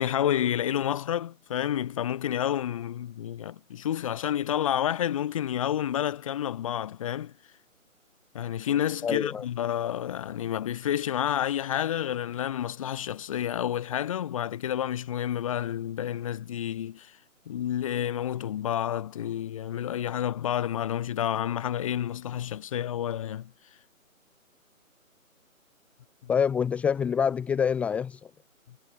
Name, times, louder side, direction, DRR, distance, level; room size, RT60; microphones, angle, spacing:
voice 1, 0.0-7.3 8.3-17.1 17.5-23.5 26.2-26.3, left 10 dB, 25° left, 2.9 m, -29 dB
voice 2, 9.0-9.4 26.3-28.2, left 7 dB, 5° left, 1.4 m, -26 dB
figure-of-eight pair, 150°, 42 cm